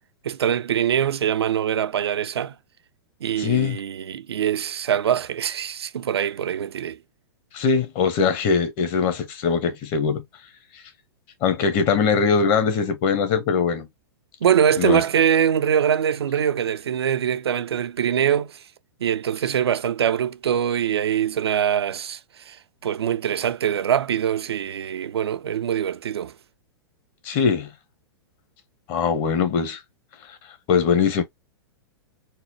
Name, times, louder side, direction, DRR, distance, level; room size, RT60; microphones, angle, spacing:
voice 1, 0.2-2.5 3.2-7.0 14.4-18.6 19.0-26.3, right 9 dB, 85° right, 0.4 m, -23 dB
voice 2, 3.4-3.8 7.5-10.2 11.4-13.9 14.8-15.0 27.2-27.7 28.9-29.8 30.3-30.4 30.7-31.2, left 6 dB, 40° left, 1.1 m, -21 dB
4.2 x 2.1 x 2.7 m
hypercardioid pair, 110°, 13 cm